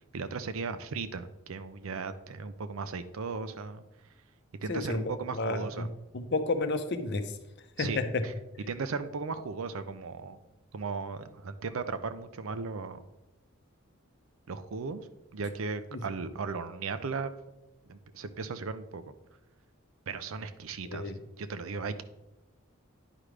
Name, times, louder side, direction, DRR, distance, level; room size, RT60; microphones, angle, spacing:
voice 1, 0.1-3.8 4.6-5.9 7.8-8.3 8.7-10.4 10.7-13.0 14.5-15.1 15.3-17.3 17.9-19.0 20.1-21.1 21.4-22.0, right 4 dB, 75° right, 11 dB, 0.5 m, -36 dB
voice 2, 4.7-5.0 5.4-5.9 6.1-7.2 7.8-8.2 15.9-16.0 20.9-21.2, left 3 dB, 55° left, 7 dB, 0.7 m, -31 dB
10.0 x 4.9 x 3.3 m, 0.96 s
head